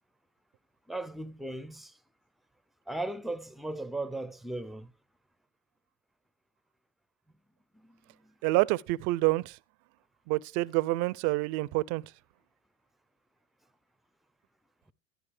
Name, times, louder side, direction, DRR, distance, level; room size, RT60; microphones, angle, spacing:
voice 1, 0.9-2.0 2.9-4.9 7.7-8.3, right 2 dB, ahead, 0.5 m, -37 dB
voice 2, 8.4-9.6 10.3-12.0, right 20 dB, 50° right, 0.5 m, -27 dB
11.0 x 10.5 x 3.3 m
hypercardioid pair, 80°, 37 cm